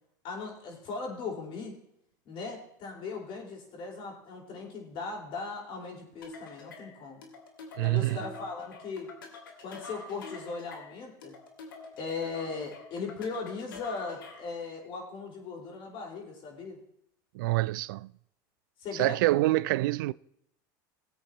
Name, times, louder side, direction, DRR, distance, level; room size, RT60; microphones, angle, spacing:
voice 1, 0.2-1.7 2.2-7.2 7.8-9.1 9.6-11.3 12.0-16.8 18.8-19.2, left 4 dB, 55° left, 4.7 m, -38 dB
sound 1, 6.2-14.6, left 4 dB, 90° left, 2.2 m, -46 dB
voice 2, 7.8-8.2 17.3-18.1 18.9-20.1, right 19 dB, 75° right, 0.4 m, -26 dB
18.5 x 8.3 x 3.0 m
hypercardioid pair, 95°, 11 cm